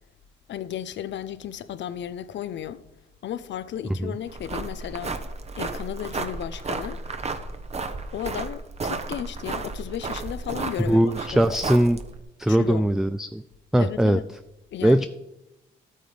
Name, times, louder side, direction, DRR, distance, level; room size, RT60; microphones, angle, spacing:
voice 1, 0.5-2.8 3.2-5.2 5.6-7.0 8.1-11.6 12.5-12.9 13.8-14.3 14.7-15.1, left 10 dB, 65° left, 0.7 m, -34 dB
sound 1, 4.3-12.2, right 3 dB, 35° right, 1.1 m, -33 dB
voice 2, 10.9-12.0 12.4-13.4 13.7-14.2 14.8-15.1, right 1 dB, ahead, 0.4 m, -20 dB
12.0 x 8.8 x 5.1 m
cardioid pair, 90°, 20 cm